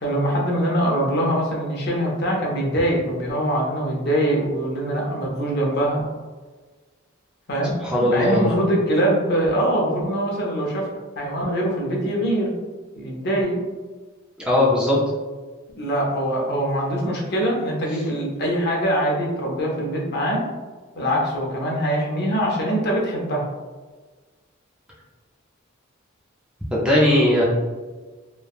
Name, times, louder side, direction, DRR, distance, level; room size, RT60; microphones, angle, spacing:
voice 1, 0.0-6.0 7.5-10.9 11.2-12.5 13.0-13.6 15.7-20.4 21.0-23.5, right 1 dB, 50° left, -2 dB, 0.7 m, -23 dB
voice 2, 7.8-8.6 14.5-15.0 26.7-27.4, left 1 dB, 5° right, -5 dB, 0.4 m, -18 dB
3.3 x 2.1 x 2.3 m, 1.3 s
head